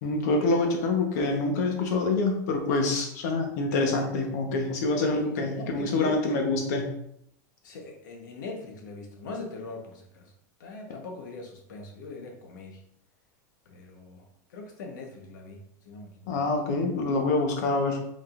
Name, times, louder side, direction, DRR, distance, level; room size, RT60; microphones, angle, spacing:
voice 1, 0.0-6.9 16.3-18.0, left 3 dB, 65° left, 2 dB, 1.1 m, -26 dB
voice 2, 5.1-6.5 7.6-10.3 10.6-12.8 13.6-16.3, left 3 dB, 90° left, 2 dB, 1.2 m, -41 dB
5.3 x 3.7 x 2.5 m, 0.74 s
supercardioid pair, 160°, 10 cm